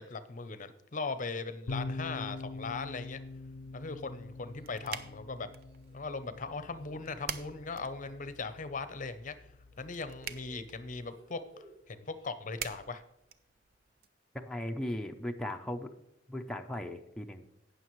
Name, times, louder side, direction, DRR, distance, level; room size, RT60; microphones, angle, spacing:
voice 1, 0.0-3.2 3.7-5.5 5.9-9.3 9.8-13.0, left 4 dB, 45° left, 11 dB, 0.7 m, -39 dB
sound 1, 1.7-11.1, left 3 dB, 85° left, 0.5 m, -45 dB
sound 2, 3.3-3.4 4.6-5.2 5.5-8.6 9.7-11.8 12.0-12.8, left 1 dB, 35° right, 2.8 m, -59 dB
sound 3, 4.1-14.1, right 8 dB, 55° right, 0.6 m, -48 dB
voice 2, 14.3-15.9 16.3-17.5, left 1 dB, 5° left, 2 dB, 0.6 m, -37 dB
18.0 x 6.6 x 3.1 m, 0.83 s
head